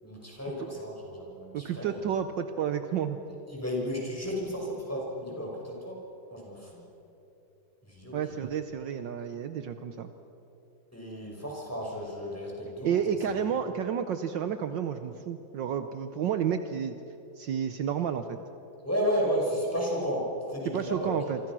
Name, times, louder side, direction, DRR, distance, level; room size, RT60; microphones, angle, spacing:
voice 1, 0.0-2.0 3.5-6.0 6.3-6.8 7.8-8.4 10.9-12.9 13.5-13.7 18.8-21.1, equal, 5° left, -2 dB, 5.8 m, -33 dB
voice 2, 1.5-3.2 8.1-10.1 12.8-16.9 17.3-18.4 20.6-21.4, right 8 dB, 70° right, 8 dB, 1.5 m, -31 dB
28.0 x 24.5 x 6.2 m, 3.0 s
omnidirectional pair, 2.2 m